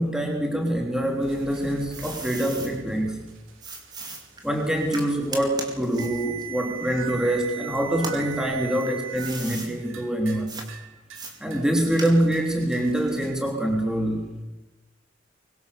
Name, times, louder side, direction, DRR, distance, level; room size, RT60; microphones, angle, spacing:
voice 1, 0.0-3.2 4.4-10.6 11.4-14.3, right 1 dB, 5° right, 1 dB, 3.3 m, -25 dB
sound 1, 1.2-9.3 9.7-10.4 10.7-11.2 11.5-13.4, right 9 dB, 80° right, 4.3 m, -40 dB
sound 2, 1.3-2.7 3.6-7.5 7.9-9.7 10.5-10.7 11.1-12.5, right 3 dB, 20° right, 4.5 m, -38 dB
25.0 x 24.0 x 7.1 m, 1.1 s
head